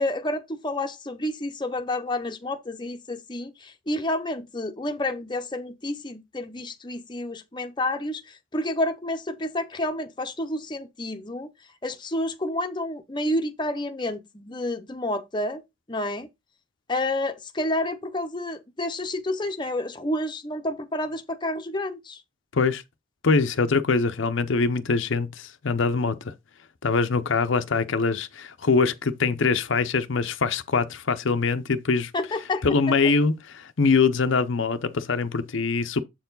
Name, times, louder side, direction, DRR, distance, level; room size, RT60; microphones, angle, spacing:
voice 1, 0.0-11.5 11.8-15.6 15.9-16.3 16.9-22.2 32.1-32.6, left 1 dB, 20° left, 0.7 m, -29 dB
voice 2, 23.2-26.3 26.8-32.1 32.6-36.0, left 4 dB, 60° left, 0.6 m, -23 dB
7.6 x 4.5 x 3.9 m
head